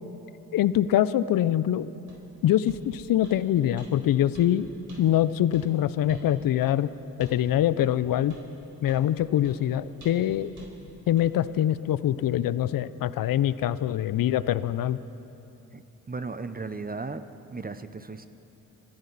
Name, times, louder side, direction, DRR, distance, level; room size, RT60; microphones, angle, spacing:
voice 1, 0.5-1.9 2.4-4.7 5.0-6.9 7.2-8.4 8.8-10.5 11.1-15.0, left 11 dB, 65° left, 16 dB, 0.6 m, -24 dB
sound 1, 2.1-2.2 2.7-2.8 3.2-3.4 3.8-3.9 4.3-4.5 4.9-5.0 5.5-5.7 6.1-6.3 6.6-6.7 7.2-7.4 7.8-7.9 8.3-8.4 8.9-9.1 9.4-9.6 10.0-10.3 10.6-10.7 11.2-11.3, right 2 dB, 50° right, 4.6 m, -49 dB
voice 2, 16.1-18.3, right 3 dB, 25° right, 11 dB, 0.8 m, -36 dB
26.5 x 13.0 x 4.1 m, 2.9 s
supercardioid pair, 45°, 37 cm